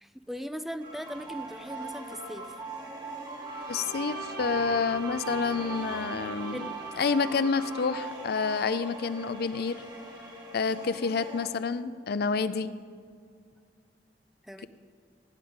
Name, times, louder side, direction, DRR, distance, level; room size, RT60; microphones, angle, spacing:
voice 1, 0.0-2.6 6.5-7.0 14.4-14.7, equal, ahead, 10 dB, 0.4 m, -39 dB
sound 1, 0.8-11.5, right 3 dB, 25° right, 2.2 m, -41 dB
Bowed string instrument, 3.4-8.0, right 5 dB, 65° right, 1.6 m, -41 dB
voice 2, 3.7-6.7 7.0-9.8 10.5-12.7, left 5 dB, 60° left, 14 dB, 0.5 m, -28 dB
15.0 x 5.1 x 9.7 m, 2.1 s
head